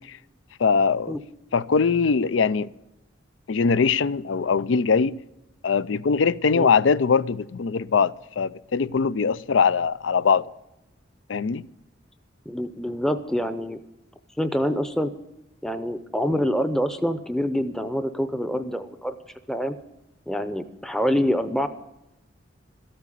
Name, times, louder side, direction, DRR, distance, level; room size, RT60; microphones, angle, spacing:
voice 1, 0.6-1.2 1.5-2.7 3.5-5.2 5.6-10.4 11.3-11.6, left 5 dB, 80° left, 0.5 m, -21 dB
voice 2, 12.5-13.8 14.4-15.1 15.6-19.1 19.5-19.7 20.3-21.7, equal, 5° left, 0.6 m, -26 dB
13.5 x 8.7 x 9.9 m
head